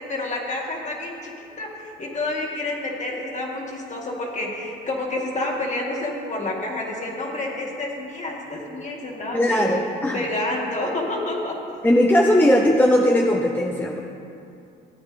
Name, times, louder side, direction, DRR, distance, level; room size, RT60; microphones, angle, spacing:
voice 1, 0.0-9.8 10.1-11.6, left 2 dB, 35° left, -1 dB, 2.2 m, -29 dB
voice 2, 9.3-10.2 11.8-14.0, left 1 dB, 10° left, 1 dB, 0.6 m, -18 dB
15.0 x 8.8 x 3.5 m, 2.6 s
cardioid pair, 90°, 20 cm